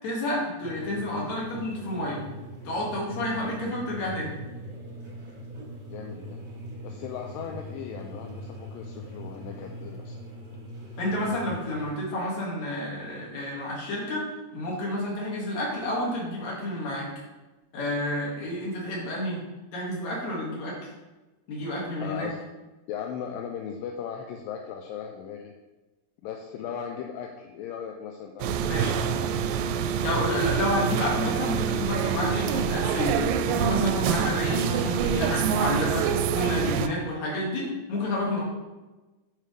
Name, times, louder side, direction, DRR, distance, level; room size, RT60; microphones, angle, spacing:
voice 1, 0.0-2.2 2.6-4.3 11.0-14.3 14.5-17.1 17.7-19.4 19.7-20.9 21.5-22.3 28.7-29.0 30.0-38.4, left 1 dB, 55° left, -4 dB, 3.2 m, -30 dB
sound 1, 0.6-11.9, equal, 35° right, 1.5 m, -41 dB
voice 2, 5.9-6.4 6.8-10.2 22.0-22.4 22.9-25.5 26.2-29.3, left 8 dB, 80° left, 2 dB, 2.3 m, -37 dB
sound 2, 28.4-36.9, right 7 dB, 80° right, 2.1 m, -26 dB
9.2 x 6.7 x 3.4 m, 1.1 s
omnidirectional pair, 4.2 m